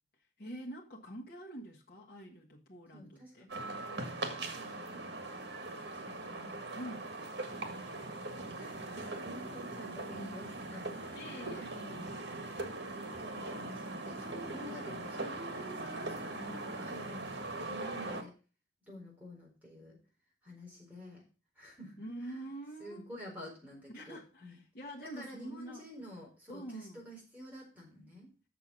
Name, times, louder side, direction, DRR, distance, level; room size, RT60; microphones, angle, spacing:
voice 1, 0.4-3.5 6.7-7.1 11.1-11.7 22.0-23.1 23.9-25.8 26.5-27.0, right 1 dB, 55° left, -2 dB, 1.3 m, -46 dB
voice 2, 2.9-4.2 4.5-5.1 5.5-6.7 7.6-8.0 8.6-12.1 13.2-18.3 18.9-20.0 20.4-21.2 21.6-22.5 22.8-24.6 25.0-28.3, equal, 10° right, -4 dB, 4.2 m, -50 dB
sound 1, 3.5-18.2, right 2 dB, 80° right, 1.6 m, -41 dB
7.2 x 6.9 x 6.3 m, 0.34 s
head